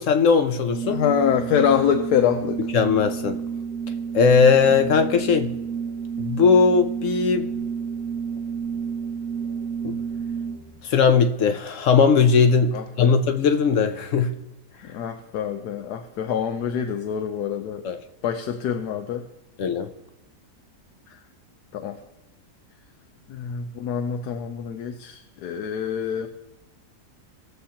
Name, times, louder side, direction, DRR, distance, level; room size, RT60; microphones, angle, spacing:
voice 1, 0.0-1.0 2.7-3.4 4.1-5.5 6.2-7.6 9.8-10.0 10.8-14.3 17.8-18.0 19.6-19.9, left 5 dB, 65° left, 8 dB, 0.8 m, -19 dB
Organ, 0.6-10.8, right 6 dB, 80° right, 1.3 m, -30 dB
voice 2, 0.9-2.6 12.7-13.1 14.8-17.8 18.2-19.2 21.7-22.0 23.3-26.3, left 8 dB, 85° left, 6 dB, 1.2 m, -25 dB
19.5 x 7.2 x 2.8 m, 0.92 s
omnidirectional pair, 1.7 m